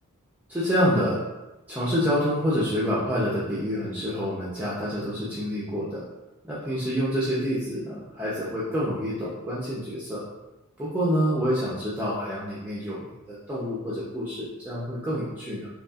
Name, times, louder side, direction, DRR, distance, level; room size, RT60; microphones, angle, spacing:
voice 1, 0.5-1.2 1.7-6.0 6.5-10.2 10.8-15.7, equal, 10° right, -9 dB, 0.6 m, -27 dB
5.3 x 2.3 x 2.4 m, 1.0 s
head